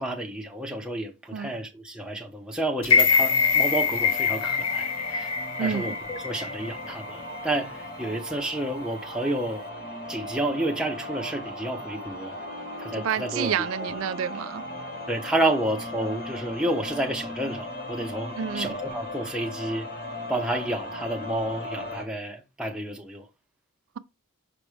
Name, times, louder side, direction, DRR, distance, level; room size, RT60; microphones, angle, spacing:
voice 1, 0.0-5.3 5.6-9.6 10.1-12.4 12.8-13.7 15.1-19.9 20.3-23.3, right 1 dB, 5° right, 0.9 m, -30 dB
sound 1, 2.8-7.0 7.4-7.5, left 5 dB, 85° left, 1.0 m, -24 dB
sound 2, 3.1-22.0, left 1 dB, 45° left, 1.6 m, -37 dB
voice 2, 5.6-5.9 13.0-14.6 18.4-18.7, right 7 dB, 70° right, 0.3 m, -29 dB
5.9 x 5.2 x 3.3 m
head